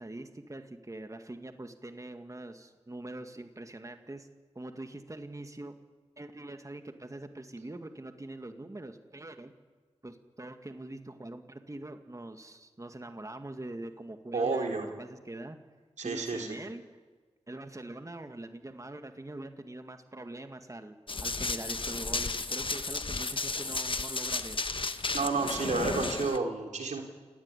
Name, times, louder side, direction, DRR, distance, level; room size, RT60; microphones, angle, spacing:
voice 1, 0.0-4.3 4.6-5.7 6.2-9.5 10.0-15.6 16.0-16.8 17.5-21.0 21.2-24.6, right 2 dB, 25° right, 7 dB, 2.1 m, -43 dB
voice 2, 14.3-14.9 16.0-16.6 25.1-27.0, right 4 dB, 80° right, 3 dB, 3.5 m, -30 dB
Run, 21.1-26.4, left 3 dB, 45° left, 1.3 m, -33 dB
28.5 x 16.5 x 10.0 m, 1.4 s
cardioid pair, 45°, 12 cm